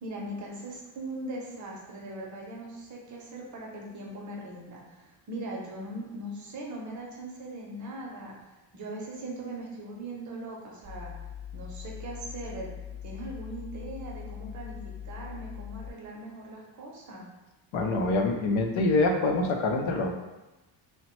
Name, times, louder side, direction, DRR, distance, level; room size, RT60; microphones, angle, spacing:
voice 1, 0.0-8.4 8.7-11.1 11.5-12.7 13.0-17.3, right 1 dB, 40° right, -2 dB, 0.6 m, -40 dB
sound 1, 10.8-15.9, left 9 dB, ahead, 0.3 m, -41 dB
voice 2, 17.7-20.1, left 2 dB, 90° left, 3 dB, 0.6 m, -25 dB
2.9 x 2.1 x 3.0 m, 1.0 s
cardioid pair, 150°, 45 cm